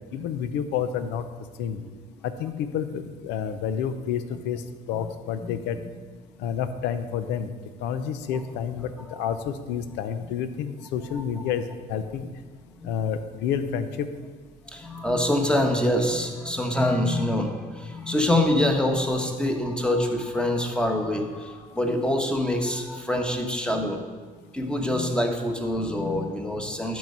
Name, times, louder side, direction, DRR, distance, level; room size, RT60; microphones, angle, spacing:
voice 1, 0.1-1.3 1.6-1.8 2.2-5.8 6.4-7.5 7.8-12.3 12.8-14.1, left 8 dB, 90° left, 10 dB, 0.6 m, -29 dB
voice 2, 5.4-5.9 9.1-9.3 12.8-12.9 14.7-24.0 24.5-27.0, left 1 dB, 5° left, 3 dB, 1.1 m, -25 dB
12.0 x 4.7 x 5.3 m, 1.5 s
cardioid pair, 110°, 17 cm